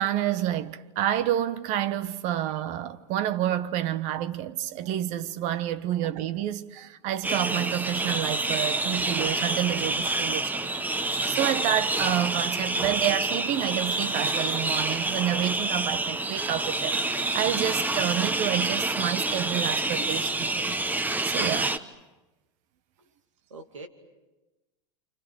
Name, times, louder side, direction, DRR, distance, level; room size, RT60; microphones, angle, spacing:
voice 1, 0.0-20.8 21.2-21.8, right 12 dB, 50° right, 1.3 m, -29 dB
sound 1, 7.2-21.8, right 2 dB, 10° right, 1.2 m, -28 dB
voice 2, 9.7-10.1 12.6-12.7 23.5-23.9, right 2 dB, 90° right, 2.7 m, -47 dB
29.5 x 27.5 x 6.5 m
hypercardioid pair, 95°, 15 cm